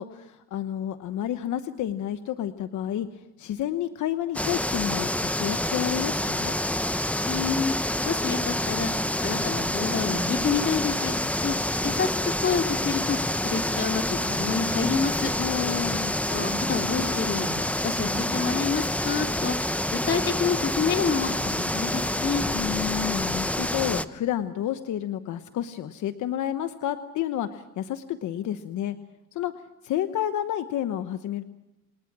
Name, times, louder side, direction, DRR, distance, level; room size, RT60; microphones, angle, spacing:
voice 1, 0.0-6.5 15.4-16.2 22.5-29.0 29.3-29.5 29.8-31.4, left 11 dB, 80° left, 10 dB, 1.1 m, -30 dB
sound 1, 4.3-24.0, left 1 dB, 5° left, 1.0 m, -27 dB
voice 2, 7.3-7.7 8.0-8.9 9.2-11.2 11.4-11.6 11.8-12.1 12.4-13.2 13.4-15.3 16.3-22.4, left 5 dB, 40° left, 4 dB, 2.9 m, -28 dB
29.0 x 19.0 x 6.1 m, 0.95 s
cardioid pair, 90°, 30 cm